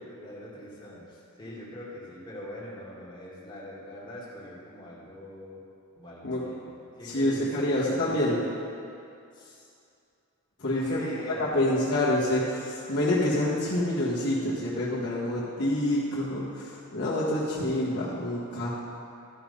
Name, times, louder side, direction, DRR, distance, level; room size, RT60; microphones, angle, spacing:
voice 1, 0.0-5.6 6.0-6.7 7.0-8.4 9.3-9.7 10.7-11.6, left 1 dB, 20° left, -7 dB, 2.2 m, -42 dB
voice 2, 7.0-8.4 10.6-11.0 11.3-18.7, left 1 dB, 55° left, -9 dB, 1.6 m, -27 dB
13.0 x 5.7 x 5.4 m, 2.6 s
head